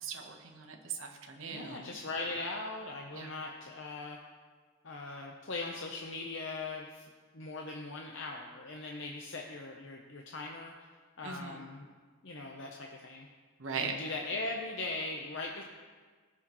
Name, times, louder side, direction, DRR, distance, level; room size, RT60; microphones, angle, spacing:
voice 1, 0.0-1.9 3.1-3.3 11.2-11.6 13.6-13.9, right 6 dB, 60° right, 3 dB, 1.1 m, -39 dB
voice 2, 1.5-4.2 4.8-7.1 7.3-10.7 11.2-11.9 12.2-13.3 13.8-15.6, left 3 dB, 55° left, 0 dB, 0.7 m, -40 dB
17.0 x 6.2 x 3.1 m, 1.5 s
head